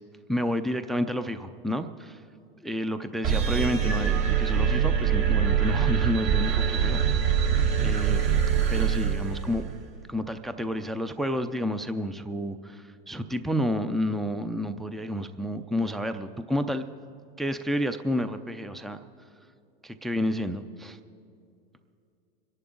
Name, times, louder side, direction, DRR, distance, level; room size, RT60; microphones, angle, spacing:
voice 1, 0.3-2.2 2.6-7.3 7.8-8.2 8.7-9.6 10.1-16.8 17.4-19.0 19.8-21.0, equal, ahead, 10 dB, 0.3 m, -30 dB
sound 1, 3.2-9.8, right 8 dB, 60° right, 2.4 m, -24 dB
25.0 x 11.0 x 3.8 m, 2.6 s
hypercardioid pair, 120°, 29 cm